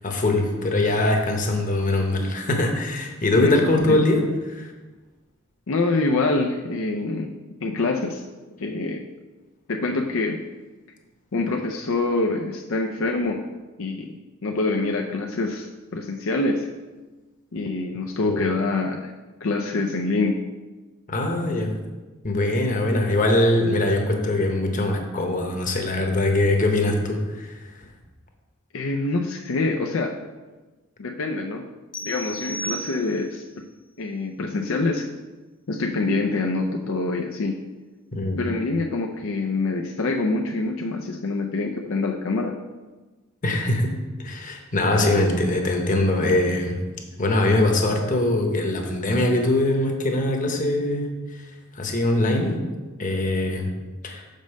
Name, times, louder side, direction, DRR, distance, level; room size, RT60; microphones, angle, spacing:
voice 1, 0.0-4.7 18.2-18.5 21.1-21.8 22.2-27.9 38.1-38.4 43.4-46.8 47.2-51.5 51.7-52.6 53.0-53.7 54.0-54.2, left 1 dB, 40° left, 2 dB, 1.0 m, -22 dB
voice 2, 5.7-7.3 7.6-8.2 8.6-9.0 9.7-10.4 11.3-13.4 13.8-14.2 14.4-16.7 17.5-19.1 19.4-20.4 28.7-30.1 31.0-31.6 32.0-33.4 34.0-35.1 35.7-37.6 38.4-42.5, left 3 dB, 70° left, 2 dB, 0.5 m, -25 dB
sound 1, 31.9-33.5, right 1 dB, 20° left, 0.4 m, -34 dB
5.3 x 5.2 x 6.4 m, 1.2 s
head